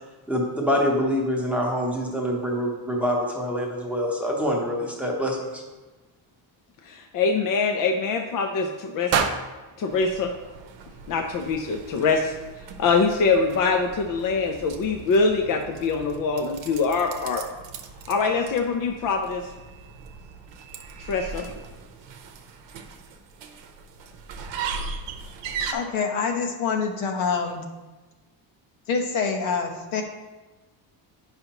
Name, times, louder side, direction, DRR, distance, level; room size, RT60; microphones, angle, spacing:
voice 1, 0.3-5.6, equal, 5° right, -2 dB, 0.8 m, -25 dB
voice 2, 6.8-9.1 9.8-10.3 11.1-12.3 12.8-17.4 18.1-19.5 21.0-21.5, left 4 dB, 45° left, 4 dB, 0.5 m, -24 dB
sound 1, 9.1-11.2, right 6 dB, 35° right, 0.4 m, -29 dB
sound 2, 9.9-25.7, right 5 dB, 70° right, 0.8 m, -39 dB
voice 3, 25.7-27.7 28.9-30.0, left 5 dB, 90° left, 3 dB, 1.2 m, -26 dB
9.0 x 5.6 x 2.9 m, 1.2 s
cardioid pair, 175°, 46 cm